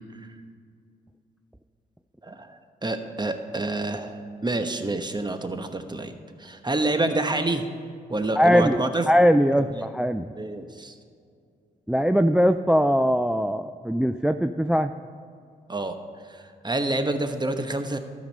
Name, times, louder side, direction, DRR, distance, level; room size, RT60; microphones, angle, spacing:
voice 1, 2.2-2.6 2.8-6.1 6.4-7.7 8.1-9.1 9.8-9.9 10.4-10.9 15.7-16.0 16.3-18.0, right 2 dB, 20° right, 8 dB, 1.1 m, -28 dB
voice 2, 8.4-10.3 11.9-14.9, equal, 5° right, 9 dB, 0.3 m, -21 dB
13.0 x 5.2 x 6.5 m, 2.3 s
supercardioid pair, 45°, 20 cm